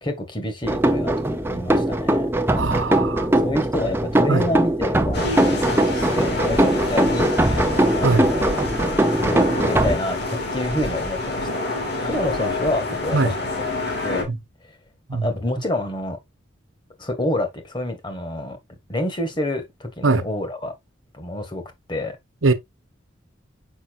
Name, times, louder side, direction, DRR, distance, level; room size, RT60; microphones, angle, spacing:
voice 1, 0.0-2.3 3.4-8.5 9.2-13.3 14.0-14.3 15.1-16.2 17.0-18.6 18.9-20.7 21.1-21.6 21.9-22.1, left 1 dB, 25° left, 1.6 m, -28 dB
sound 1, 0.6-10.0, right 1 dB, 10° right, 0.7 m, -21 dB
voice 2, 2.5-3.3 4.3-4.4 8.0-8.3 13.1-13.3 14.3-14.4 15.1-15.3 20.0-20.2 22.4-22.5, right 3 dB, 85° right, 1.0 m, -21 dB
sound 2, 5.1-14.2, left 2 dB, 55° left, 3.1 m, -27 dB
7.1 x 5.7 x 2.5 m
head